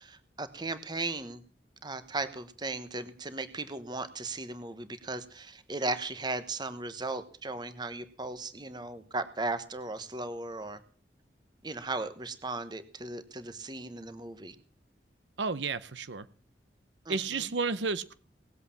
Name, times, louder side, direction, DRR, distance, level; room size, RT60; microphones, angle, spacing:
voice 1, 0.0-1.4 1.8-10.8 11.6-14.5 17.0-17.5, right 2 dB, 25° right, 12 dB, 1.1 m, -37 dB
voice 2, 15.4-16.2 17.1-18.1, right 4 dB, 80° right, 14 dB, 0.8 m, -32 dB
18.5 x 8.2 x 7.0 m, 0.42 s
head